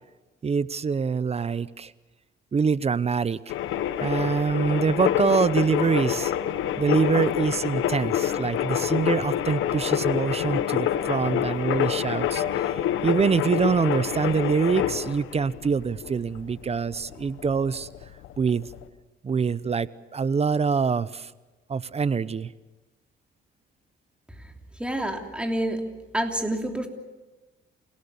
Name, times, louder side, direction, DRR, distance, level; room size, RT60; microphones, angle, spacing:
voice 1, 0.4-1.9 2.5-3.5 4.0-6.4 6.8-17.9 18.4-18.7 19.2-21.3 21.7-22.5, right 5 dB, 30° right, 18 dB, 0.7 m, -25 dB
sound 1, 3.5-18.8, left 11 dB, 85° left, 1.3 m, -27 dB
voice 2, 24.8-25.8 26.1-26.9, right 1 dB, 5° right, 3 dB, 3.2 m, -27 dB
29.0 x 17.5 x 7.1 m, 1.1 s
cardioid pair, 90°, 20 cm